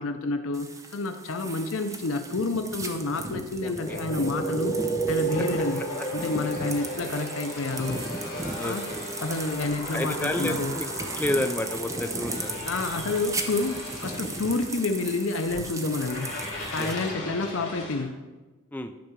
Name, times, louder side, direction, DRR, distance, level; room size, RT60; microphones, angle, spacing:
voice 1, 0.0-4.7 5.1-5.8 6.1-8.0 8.6-8.8 9.2-10.8 12.6-16.3 16.7-18.1, left 3 dB, 65° left, 7 dB, 0.7 m, -29 dB
sound 1, 0.5-17.1, right 2 dB, 15° right, 0.8 m, -36 dB
voice 2, 3.6-4.0 8.6-9.1 9.9-10.9 11.2-12.5 16.8-16.9 18.7-18.9, left 1 dB, 10° left, 6 dB, 0.4 m, -30 dB
sound 2, 3.8-18.0, right 2 dB, 35° left, 3.5 m, -34 dB
12.0 x 4.7 x 6.7 m, 1.2 s
head